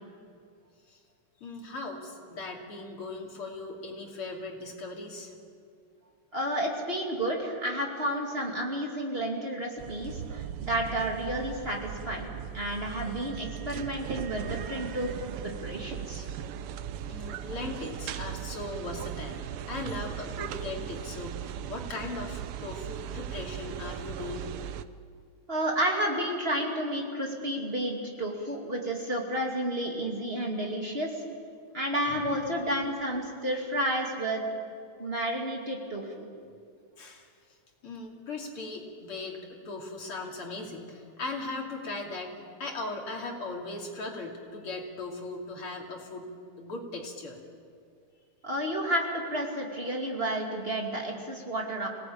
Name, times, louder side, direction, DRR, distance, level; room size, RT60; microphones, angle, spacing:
voice 1, 1.4-5.3 17.1-19.4 19.7-24.5 32.1-32.6 37.0-37.6 37.8-42.3 42.6-47.4, left 2 dB, 80° left, 0 dB, 3.7 m, -38 dB
voice 2, 6.3-12.3 12.5-16.2 25.5-31.2 31.7-34.4 35.0-36.2 48.4-51.9, right 1 dB, 25° right, 0 dB, 2.8 m, -31 dB
sound 1, 9.8-24.8, right 10 dB, 85° right, 1.7 m, -38 dB
26.5 x 18.0 x 8.8 m, 2.3 s
omnidirectional pair, 2.4 m